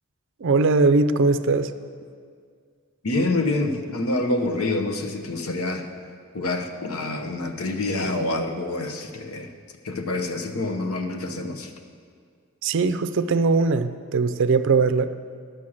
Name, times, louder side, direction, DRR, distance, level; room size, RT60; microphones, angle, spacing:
voice 1, 0.4-1.7 12.6-15.1, right 4 dB, 55° right, 11 dB, 0.4 m, -20 dB
voice 2, 3.0-5.9 6.3-9.5 9.8-11.7, left 2 dB, 80° left, 5 dB, 0.9 m, -27 dB
11.0 x 6.3 x 7.3 m, 2.1 s
head